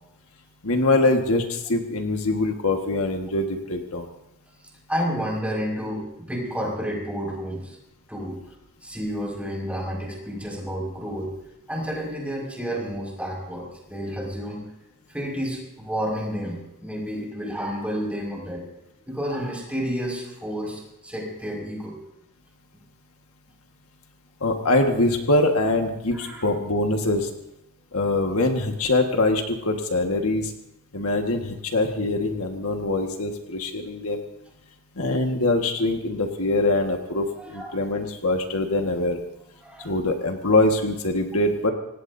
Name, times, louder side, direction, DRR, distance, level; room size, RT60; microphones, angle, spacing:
voice 1, 0.6-4.1 24.4-27.3 27.9-30.5 30.9-34.2 35.0-39.2 39.8-41.7, left 2 dB, 70° left, 3 dB, 1.7 m, -23 dB
voice 2, 4.9-7.8 8.1-8.4 8.8-11.3 11.7-14.7 15.1-18.6 19.1-21.9 26.1-26.4 37.3-37.7 39.6-39.9, equal, 5° right, -3 dB, 5.6 m, -30 dB
26.0 x 18.5 x 2.7 m, 0.91 s
head